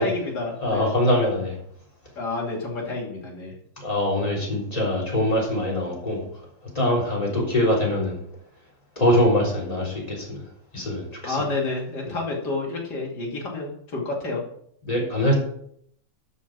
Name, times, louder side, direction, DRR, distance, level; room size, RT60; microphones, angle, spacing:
voice 1, 0.0-0.9 2.1-3.5 11.2-14.4, left 3 dB, 60° left, -1 dB, 3.2 m, -29 dB
voice 2, 0.6-1.5 3.8-6.2 6.8-8.2 9.0-10.4 10.7-11.4 14.9-15.3, left 1 dB, 20° left, -3 dB, 3.8 m, -23 dB
12.0 x 5.5 x 6.2 m, 0.68 s
omnidirectional pair, 2.0 m